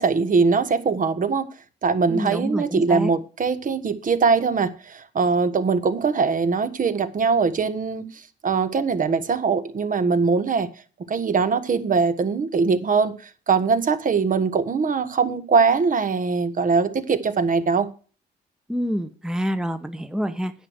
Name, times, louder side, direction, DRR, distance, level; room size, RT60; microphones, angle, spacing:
voice 1, 0.0-1.5 1.8-8.1 8.4-10.7 11.1-13.1 13.5-17.9, right 5 dB, 45° right, 1.5 m, -21 dB
voice 2, 2.1-3.1 18.7-20.5, equal, 5° right, 1.1 m, -27 dB
10.0 x 6.5 x 8.1 m
cardioid pair, 85°, 18 cm